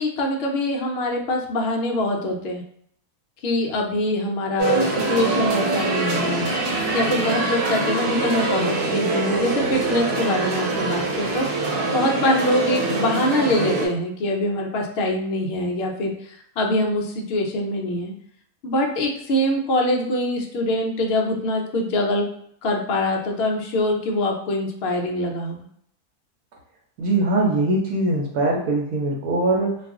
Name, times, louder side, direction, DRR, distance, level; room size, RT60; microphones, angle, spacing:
voice 1, 0.0-2.6 3.4-6.5 6.9-18.1 18.6-22.3 22.6-25.6, left 1 dB, 75° left, 1 dB, 0.5 m, -24 dB
sound 1, 4.6-13.9, right 3 dB, 85° right, 1.3 m, -24 dB
voice 2, 27.0-29.8, right 2 dB, 70° right, -2 dB, 1.0 m, -21 dB
2.4 x 2.4 x 3.5 m, 0.68 s
omnidirectional pair, 1.6 m